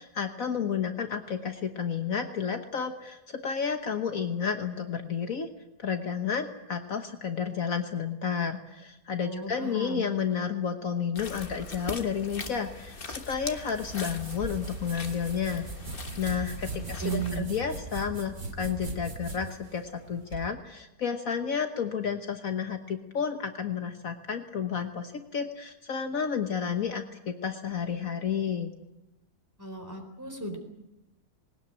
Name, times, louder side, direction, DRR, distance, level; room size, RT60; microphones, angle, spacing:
voice 1, 0.0-5.5 5.8-15.7 16.2-28.7, left 7 dB, 60° left, 6 dB, 1.6 m, -31 dB
voice 2, 9.2-10.0 16.7-17.5 29.6-30.6, right 4 dB, 10° right, 3 dB, 4.0 m, -35 dB
sound 1, 11.1-17.4, left 4 dB, 35° left, 1.6 m, -41 dB
sound 2, 13.3-20.5, right 3 dB, 70° right, 3.3 m, -39 dB
20.5 x 19.0 x 8.9 m, 0.94 s
omnidirectional pair, 1.7 m